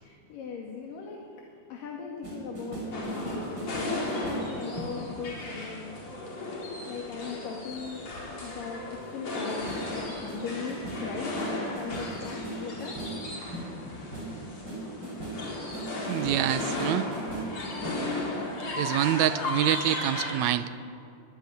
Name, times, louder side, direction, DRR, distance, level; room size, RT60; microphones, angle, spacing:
voice 1, 0.0-8.1 8.4-11.3 11.7-13.0 14.0-14.1, left 5 dB, 90° left, -1 dB, 3.8 m, -39 dB
sound 1, 2.2-5.4 9.7-9.9 10.3-18.2, right 1 dB, 30° right, 5.9 m, -39 dB
sound 2, 2.9-20.3, left 2 dB, 50° left, 5.4 m, -35 dB
voice 2, 16.0-17.1 18.7-20.7, right 12 dB, 75° right, 13 dB, 1.9 m, -26 dB
22.5 x 16.5 x 10.0 m, 2.6 s
omnidirectional pair, 3.8 m